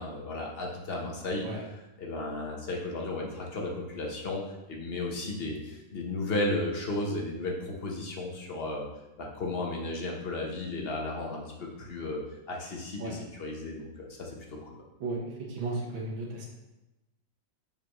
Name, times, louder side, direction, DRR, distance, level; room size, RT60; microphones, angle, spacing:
voice 1, 0.0-1.4 2.0-4.4 4.7-8.9 9.2-12.2 12.5-14.4 14.6-14.7, left 2 dB, 45° left, -1 dB, 0.8 m, -34 dB
voice 2, 15.5-16.5, right 2 dB, 85° right, -1 dB, 1.9 m, -34 dB
6.9 x 4.9 x 3.0 m, 1.0 s
omnidirectional pair, 2.1 m